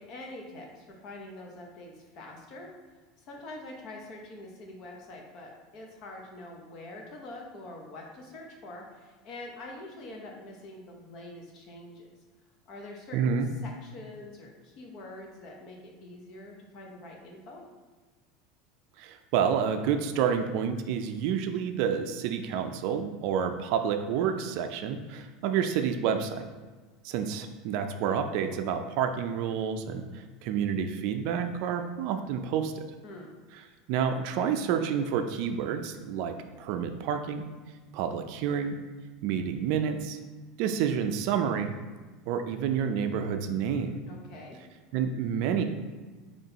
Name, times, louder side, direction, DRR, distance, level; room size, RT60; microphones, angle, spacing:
voice 1, 0.0-2.7 3.2-12.1 12.7-17.6 33.0-33.4 44.1-44.6, left 2 dB, 40° left, 1 dB, 0.9 m, -45 dB
voice 2, 13.1-13.5 19.0-26.4 27.0-30.1 30.4-32.8 33.9-37.5 37.9-38.8 39.2-40.2 40.6-41.7 42.3-44.0 44.9-45.6, right 7 dB, 55° right, 7 dB, 0.4 m, -29 dB
4.3 x 3.1 x 3.9 m, 1.3 s
supercardioid pair, 160°, 0 cm